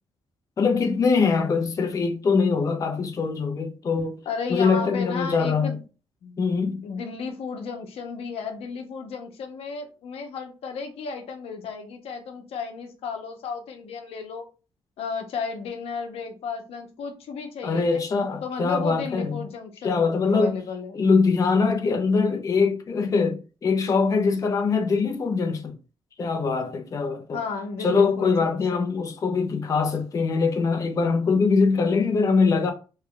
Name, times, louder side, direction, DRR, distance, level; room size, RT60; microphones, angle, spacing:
voice 1, 0.6-4.2 4.5-5.8 6.4-6.8 17.6-19.5 19.8-20.6 20.9-25.8 26.2-27.4 27.8-32.7, left 4 dB, 35° left, 0.5 m, -23 dB
voice 2, 4.3-5.8 6.2-6.4 6.8-14.5 15.0-18.0 18.4-21.0 27.3-28.9, left 5 dB, 80° left, 0.8 m, -33 dB
3.2 x 2.3 x 3.7 m
cardioid pair, 135°, 10 cm